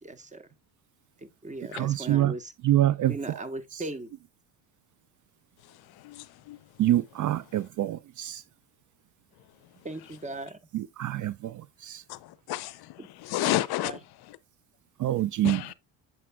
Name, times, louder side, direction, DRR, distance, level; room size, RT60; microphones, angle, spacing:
voice 1, 0.0-0.5 1.2-2.5 3.1-4.1 9.8-10.6 13.0-13.1 13.4-13.6 13.8-14.0, right 2 dB, 15° right, 1.2 m, -38 dB
voice 2, 1.7-2.3 2.6-3.1 6.8-8.4 10.7-11.3 11.8-12.0 15.0-15.6, right 13 dB, 45° right, 0.5 m, -25 dB
voice 3, 6.0-6.6 12.1-12.2 12.5-12.8 13.2-13.9 15.4-15.7, left 15 dB, 55° left, 0.6 m, -30 dB
7.4 x 7.2 x 2.3 m
supercardioid pair, 70°, 45 cm